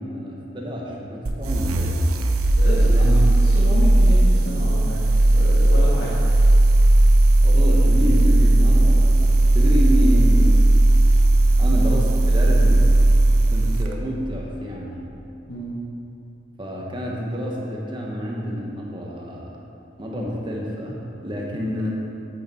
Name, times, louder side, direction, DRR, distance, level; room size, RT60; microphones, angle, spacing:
voice 1, 0.0-2.0 2.8-3.2 7.4-10.6 11.6-12.9 13.5-15.0 16.6-19.6 20.0-21.9, equal, 20° right, -3 dB, 1.2 m, -28 dB
sound 1, 1.3-13.9, right 1 dB, 85° right, 0.7 m, -16 dB
voice 2, 2.6-3.1 3.6-5.0 5.3-6.1 11.6-11.8 15.5-15.7, equal, 65° left, -9 dB, 1.7 m, -30 dB
8.4 x 8.2 x 4.5 m, 2.9 s
head